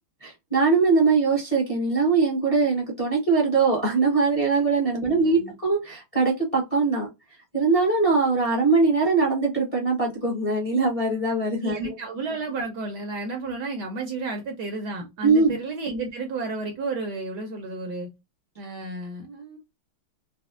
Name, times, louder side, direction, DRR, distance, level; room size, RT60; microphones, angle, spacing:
voice 1, 0.2-7.1 7.5-11.9 15.2-15.6, right 4 dB, 30° left, 0.7 m, -22 dB
voice 2, 5.0-5.5 11.6-18.1 18.6-19.6, right 3 dB, 70° right, 1.1 m, -32 dB
4.1 x 2.0 x 2.4 m
omnidirectional pair, 2.3 m